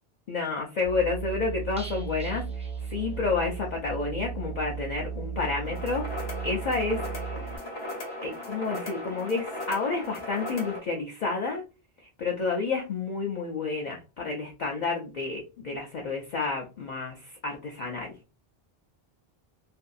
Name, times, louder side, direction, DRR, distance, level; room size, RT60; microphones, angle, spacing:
voice 1, 0.3-6.1 6.4-7.5 8.2-11.6 12.0-18.1, left 4 dB, 55° left, 0 dB, 0.6 m, -30 dB
Musical instrument, 0.8-7.6, right 7 dB, 65° right, 0.7 m, -36 dB
sound 1, 1.8-3.5 3.8-3.9 4.2-4.3, right 2 dB, 10° right, 0.4 m, -48 dB
sound 2, 5.6-10.8, left 1 dB, 75° left, 1.1 m, -37 dB
2.6 x 2.3 x 2.5 m, 0.29 s
omnidirectional pair, 1.0 m